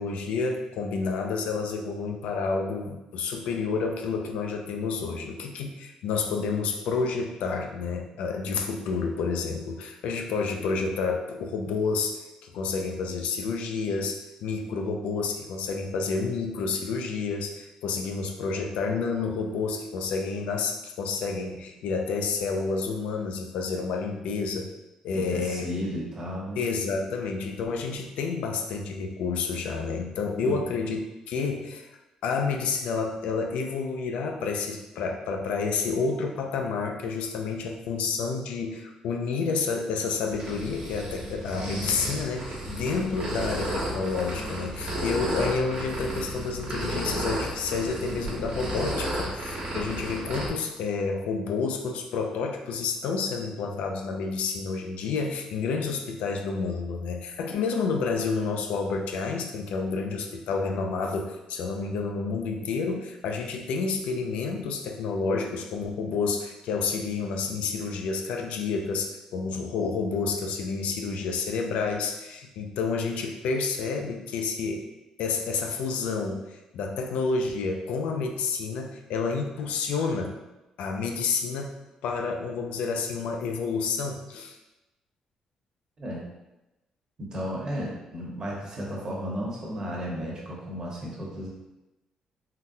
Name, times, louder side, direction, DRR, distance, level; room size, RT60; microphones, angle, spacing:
voice 1, 0.0-24.6 25.0-25.7 26.6-31.0 31.3-31.9 32.2-74.9 75.2-80.4 80.8-84.6, left 4 dB, 85° left, 3 dB, 0.4 m, -29 dB
voice 2, 25.1-26.7 30.4-30.6 86.0-86.2 87.2-91.5, equal, 35° right, -4 dB, 1.0 m, -34 dB
sound 1, 40.3-50.5, right 1 dB, 70° right, 1.1 m, -33 dB
3.8 x 2.2 x 2.6 m, 1.0 s
cardioid pair, 105°, 2 cm